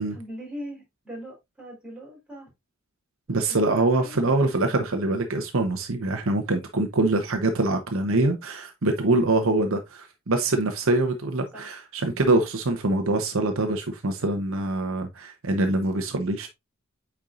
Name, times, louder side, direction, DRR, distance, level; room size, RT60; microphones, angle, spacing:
voice 1, 0.0-2.5 3.3-5.3 7.1-7.5 11.5-11.8, equal, 5° right, 4.0 m, -42 dB
voice 2, 3.3-16.5, right 2 dB, 65° right, 1.0 m, -24 dB
8.8 x 4.6 x 2.6 m
head